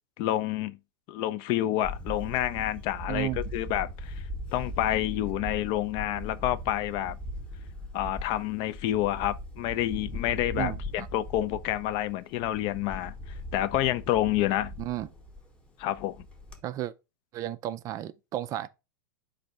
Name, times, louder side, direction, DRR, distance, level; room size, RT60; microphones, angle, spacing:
voice 1, 0.2-0.8 1.1-4.1 4.5-7.2 7.9-13.1 13.5-14.7 15.8-16.2, left 13 dB, 40° left, 0.4 m, -28 dB
Camera, 1.8-16.6, left 1 dB, 10° left, 0.9 m, -40 dB
voice 2, 10.6-11.1 14.8-15.1 16.6-16.9 17.3-18.7, right 13 dB, 30° right, 0.3 m, -33 dB
4.1 x 2.6 x 4.5 m
hypercardioid pair, 120°, 11 cm